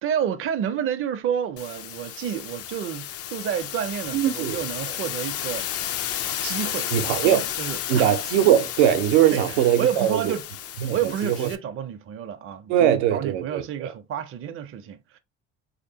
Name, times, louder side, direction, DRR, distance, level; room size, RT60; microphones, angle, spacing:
voice 1, 0.0-6.0 6.4-8.1 9.3-10.5 10.9-15.2, right 9 dB, 40° right, 0.5 m, -30 dB
sound 1, 1.6-11.6, left 10 dB, 45° left, 0.5 m, -32 dB
voice 2, 4.1-4.6 6.9-7.5 7.9-10.3 10.8-11.0 11.2-11.5 12.7-13.9, right 10 dB, 80° right, 0.7 m, -21 dB
3.3 x 2.9 x 2.7 m
hypercardioid pair, 65°, 34 cm